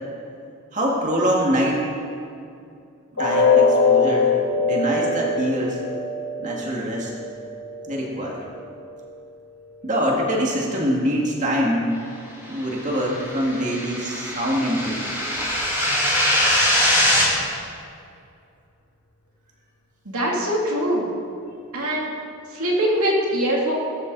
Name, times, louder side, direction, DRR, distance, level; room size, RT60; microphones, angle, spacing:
voice 1, 0.7-1.9 3.1-5.8 6.4-7.1 7.9-8.4 9.8-12.0 12.5-15.0 17.3-17.4, equal, 35° right, -2 dB, 2.0 m, -24 dB
sound 1, 3.2-9.1 9.5-9.7 10.2-10.3, left 4 dB, 85° left, 3.7 m, -22 dB
sound 2, 12.8-17.3, equal, 10° right, 4.0 m, -22 dB
voice 2, 20.0-21.1 21.7-22.1 22.5-23.7, equal, 85° right, -2 dB, 2.9 m, -22 dB
17.5 x 14.5 x 4.0 m, 2.5 s
head